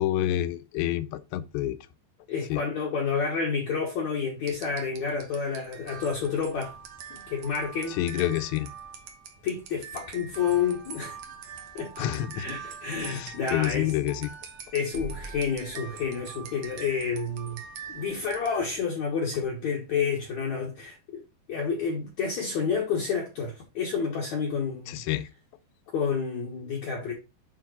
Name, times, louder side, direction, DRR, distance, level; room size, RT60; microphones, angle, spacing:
voice 1, 0.0-1.8 2.5-2.6 7.9-8.7 12.0-12.5 13.0-14.3 24.9-25.3, left 13 dB, 90° left, 2.8 m, -28 dB
voice 2, 2.3-6.8 7.1-8.0 9.4-11.2 11.8-11.9 12.3-13.9 14.7-17.6 17.9-21.2 21.5-25.0 25.9-27.1, left 5 dB, 60° left, 2.0 m, -29 dB
sound 1, 4.4-18.9, right 6 dB, 70° right, 1.8 m, -43 dB
8.8 x 3.7 x 4.2 m
omnidirectional pair, 5.0 m